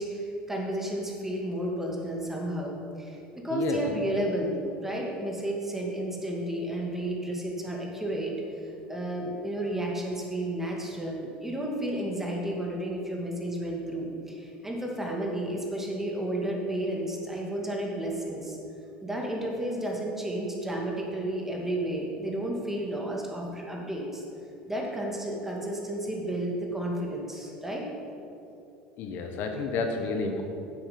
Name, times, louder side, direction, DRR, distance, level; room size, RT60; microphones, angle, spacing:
voice 1, 0.0-4.6 4.8-8.4 8.6-18.6 19.0-24.2 24.7-27.9, right 1 dB, 10° right, -1 dB, 2.1 m, -32 dB
voice 2, 29.0-30.4, left 4 dB, 60° left, 4 dB, 1.1 m, -30 dB
9.9 x 7.9 x 5.2 m, 2.8 s
supercardioid pair, 95°, 4 cm